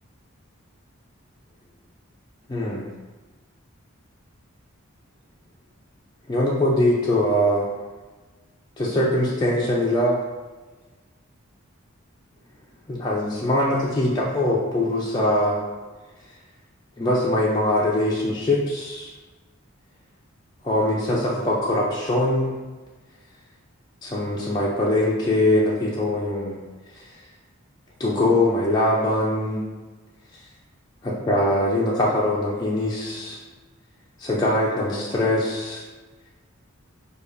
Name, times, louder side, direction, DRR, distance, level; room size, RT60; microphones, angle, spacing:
voice 1, 2.5-2.9 6.3-7.7 8.8-10.2 12.9-15.6 17.0-19.1 20.6-22.5 24.0-26.6 26.9-27.2 28.0-29.6 31.0-33.4 34.2-35.8, left 1 dB, 20° left, -6 dB, 0.3 m, -22 dB
5.0 x 2.3 x 2.5 m, 1.3 s
head